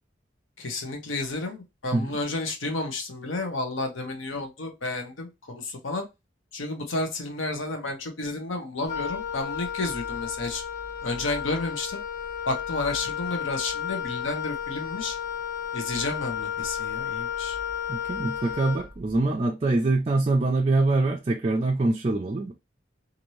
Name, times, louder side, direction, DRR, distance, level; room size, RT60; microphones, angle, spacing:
voice 1, 0.6-6.1 6.5-10.6 11.0-12.0 12.5-15.2 15.7-17.6, left 2 dB, 85° left, 0.8 m, -31 dB
Wind instrument woodwind instrument, 8.8-19.3, left 8 dB, 55° left, 1.1 m, -33 dB
voice 2, 17.9-22.5, right 2 dB, 30° right, 0.3 m, -24 dB
2.7 x 2.6 x 3.0 m
head